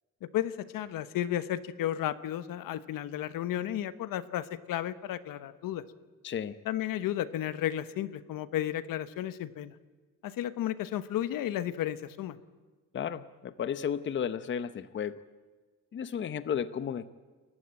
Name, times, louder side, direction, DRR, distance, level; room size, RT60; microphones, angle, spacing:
voice 1, 0.2-5.8 6.6-9.7 10.2-12.4, left 12 dB, 80° left, 13 dB, 1.2 m, -33 dB
voice 2, 6.2-6.6 12.9-15.2 15.9-17.1, left 8 dB, 35° left, 13 dB, 0.8 m, -33 dB
29.5 x 15.0 x 8.9 m, 1.4 s
cardioid pair, 160°, 33 cm